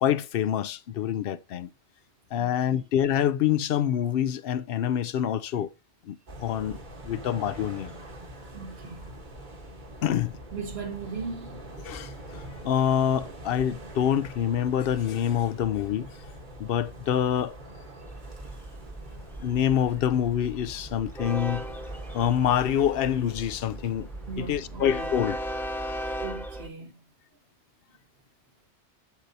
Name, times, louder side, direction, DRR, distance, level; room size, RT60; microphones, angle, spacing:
voice 1, 0.0-1.7 2.3-5.7 6.1-6.8 7.0-7.9 10.0-10.4 11.8-16.3 16.6-17.6 19.4-21.7 22.1-24.1 24.4-25.4, left 9 dB, 65° left, 0.7 m, -26 dB
voice 2, 2.4-2.8 8.5-9.2 10.5-11.6 18.0-18.2 24.3-25.1 26.2-26.9, right 4 dB, 70° right, 1.4 m, -38 dB
sound 1, 6.3-25.3, right 1 dB, 45° right, 1.4 m, -44 dB
Train, 18.1-26.7, equal, ahead, 0.6 m, -37 dB
7.9 x 7.3 x 2.7 m
omnidirectional pair, 1.1 m